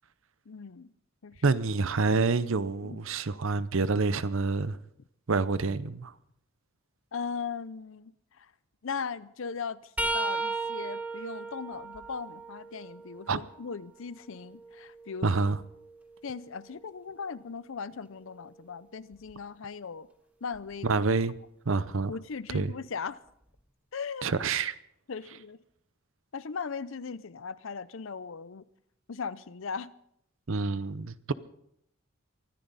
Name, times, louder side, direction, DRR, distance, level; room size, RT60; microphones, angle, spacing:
voice 1, 0.5-0.9 1.2-1.4 2.8-3.0 7.1-8.5 8.8-15.4 16.2-20.1 20.4-20.9 22.1-23.2 23.9-24.3 25.1-25.6 26.3-28.7 29.1-29.9, left 5 dB, 60° left, 0.6 m, -38 dB
voice 2, 1.4-4.8 5.3-6.1 13.3-13.4 15.2-15.6 20.8-21.4 21.7-22.1 22.5-22.7 24.2-24.7 30.5-31.3, right 4 dB, 65° right, 0.7 m, -27 dB
sound 1, 10.0-13.7 14.3-16.2 19.1-19.3 20.5-20.7 22.0-22.1, right 3 dB, 5° right, 0.9 m, -36 dB
24.0 x 13.5 x 4.1 m
head